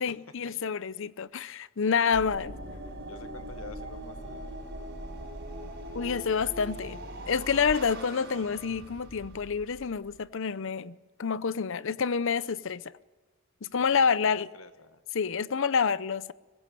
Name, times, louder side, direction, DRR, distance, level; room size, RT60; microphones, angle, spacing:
voice 1, 0.0-2.5 5.9-7.0 7.3-12.8 13.6-14.5 15.1-16.3, left 6 dB, 65° left, 0.7 m, -28 dB
sound 1, 2.1-10.2, right 1 dB, 55° right, 7.4 m, -41 dB
voice 2, 3.0-4.6 13.8-15.0, left 4 dB, 85° left, 1.4 m, -48 dB
23.5 x 20.5 x 7.6 m
head